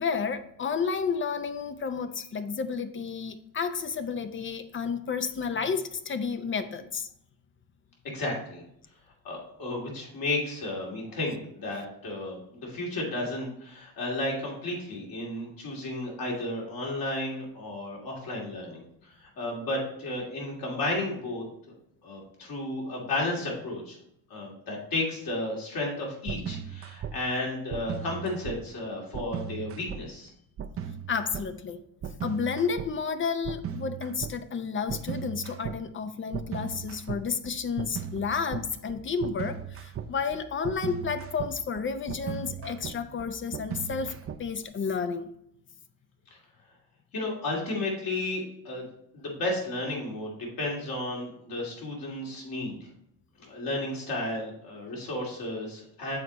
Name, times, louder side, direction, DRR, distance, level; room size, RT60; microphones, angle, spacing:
voice 1, 0.0-7.1 31.1-31.8 32.2-45.3, left 5 dB, 30° left, 11 dB, 0.5 m, -31 dB
voice 2, 8.1-8.6 9.2-21.4 22.0-24.0 24.3-30.3 47.1-48.9 49.1-52.8 53.4-56.2, left 2 dB, 60° left, -3 dB, 2.6 m, -33 dB
sound 1, 26.3-27.1 27.7-28.6 29.1-30.0 30.6-31.4 32.0-32.9 33.4-34.3 34.9-35.8 36.3-44.7, right 8 dB, 35° right, 0.5 m, -37 dB
6.5 x 4.2 x 4.0 m, 0.73 s
cardioid pair, 90°, 40 cm